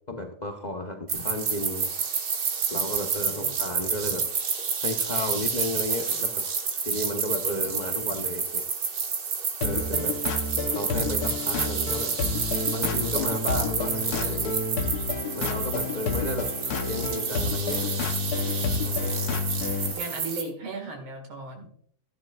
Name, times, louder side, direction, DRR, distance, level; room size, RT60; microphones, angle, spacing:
voice 1, 0.1-1.9 2.7-4.3 4.8-6.3 6.8-8.6 9.6-10.2 10.7-12.1 12.7-14.5 15.3-16.5 16.8-17.9 18.8-19.1, left 1 dB, 85° left, 3 dB, 0.4 m, -33 dB
sound 1, 1.1-20.4, right 5 dB, 55° right, 2.0 m, -29 dB
sound 2, 9.6-19.9, left 4 dB, 55° left, 1.2 m, -30 dB
voice 2, 19.9-21.7, right 3 dB, 75° right, 3 dB, 2.9 m, -36 dB
15.0 x 10.5 x 2.4 m, 0.62 s
omnidirectional pair, 2.3 m